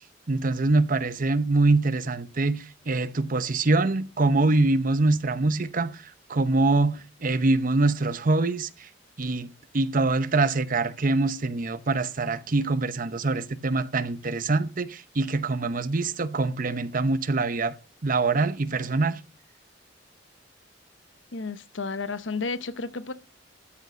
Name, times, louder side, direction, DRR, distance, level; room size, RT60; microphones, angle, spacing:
voice 1, 0.3-6.0 6.3-8.7 9.2-17.7 18.0-19.2, right 3 dB, 45° right, 0.8 m, -24 dB
voice 2, 21.3-23.1, left 4 dB, 90° left, 0.9 m, -32 dB
13.0 x 6.7 x 6.3 m
head